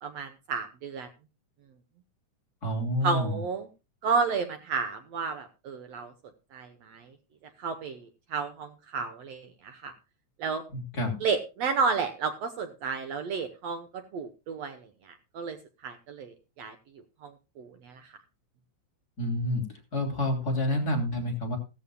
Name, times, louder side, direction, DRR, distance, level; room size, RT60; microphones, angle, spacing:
voice 1, 0.0-1.1 3.0-3.7 4.0-6.1 6.5-7.1 7.6-9.9 10.4-10.6 11.2-15.6 15.8-16.8 17.2-18.1, right 5 dB, 65° right, 8 dB, 2.0 m, -32 dB
voice 2, 2.6-3.4 10.7-11.2 19.2-21.6, left 1 dB, 30° left, 1 dB, 3.6 m, -29 dB
17.0 x 14.0 x 2.3 m, 0.28 s
omnidirectional pair, 3.6 m